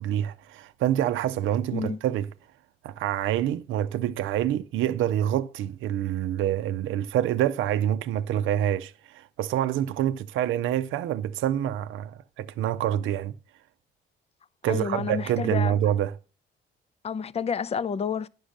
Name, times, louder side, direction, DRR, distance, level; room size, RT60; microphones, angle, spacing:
voice 1, 0.0-2.3 2.8-13.3 14.6-16.1, right 11 dB, 85° right, 0.5 m, -26 dB
voice 2, 14.7-15.7 17.0-18.3, left 6 dB, 30° left, 0.5 m, -29 dB
10.0 x 6.2 x 6.4 m
cardioid pair, 90°, 20 cm